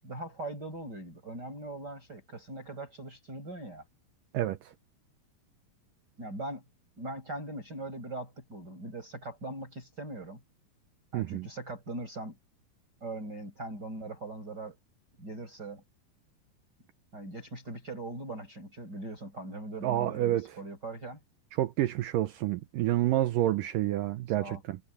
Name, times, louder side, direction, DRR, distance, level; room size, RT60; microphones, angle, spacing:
voice 1, 0.0-3.8 6.2-6.6 7.0-10.4 11.1-12.4 13.0-14.8 15.2-15.8 17.1-21.2 24.4-24.6, right 2 dB, 25° right, 6.7 m, -40 dB
voice 2, 4.3-4.7 11.1-11.5 19.8-20.6 21.5-24.8, right 14 dB, 75° right, 2.2 m, -29 dB
omnidirectional pair, 4.4 m